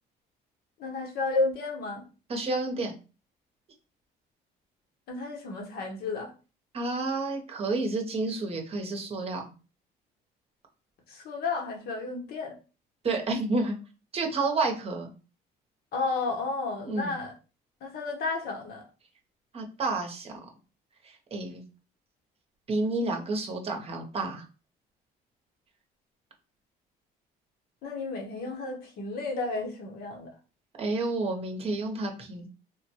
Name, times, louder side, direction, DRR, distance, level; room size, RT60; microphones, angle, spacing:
voice 1, 0.8-2.0 5.1-6.3 11.1-12.6 15.9-17.3 17.8-18.8 27.8-30.3, left 3 dB, 65° left, 1.0 m, -32 dB
voice 2, 2.3-2.9 6.7-9.4 13.0-13.7 14.1-15.1 16.8-17.1 19.5-20.3 21.0-21.6 22.7-24.4 30.8-32.5, right 3 dB, 35° right, 0.8 m, -30 dB
3.3 x 2.2 x 2.9 m
cardioid pair, 110°, 17 cm